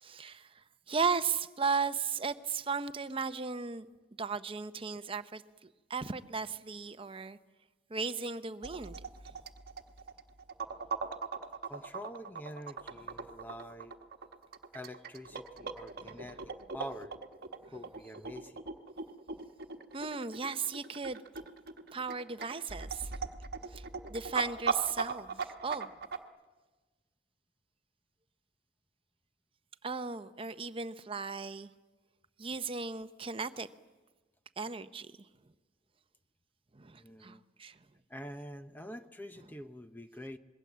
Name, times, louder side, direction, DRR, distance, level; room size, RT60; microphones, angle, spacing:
voice 1, 0.0-3.9 4.2-7.4 7.9-9.0 9.3-9.4 16.0-16.3 19.9-21.2 21.9-23.2 23.7-23.8 24.1-25.9 29.8-31.7 32.4-33.7 34.6-35.1 36.7-37.8, right 5 dB, 30° right, 0.7 m, -36 dB
sound 1, 8.6-26.2, right 5 dB, 55° right, 1.2 m, -39 dB
voice 2, 11.7-13.9 14.7-17.2 17.7-18.6 37.0-37.4 38.1-40.4, equal, 10° left, 0.6 m, -46 dB
26.0 x 21.5 x 7.4 m
head